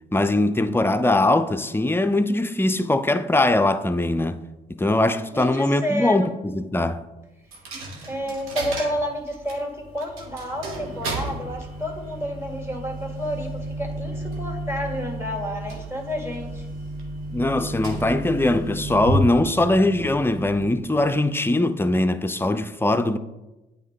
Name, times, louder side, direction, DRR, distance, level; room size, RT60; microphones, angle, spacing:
voice 1, 0.1-4.4 4.8-7.0 17.3-23.2, left 2 dB, 10° left, 0.5 m, -21 dB
voice 2, 5.3-6.3 8.0-16.6, equal, 10° right, 1.8 m, -30 dB
Coin (dropping), 7.5-21.2, right 1 dB, 85° right, 1.2 m, -32 dB
8.4 x 4.0 x 3.6 m
supercardioid pair, 50°, 21 cm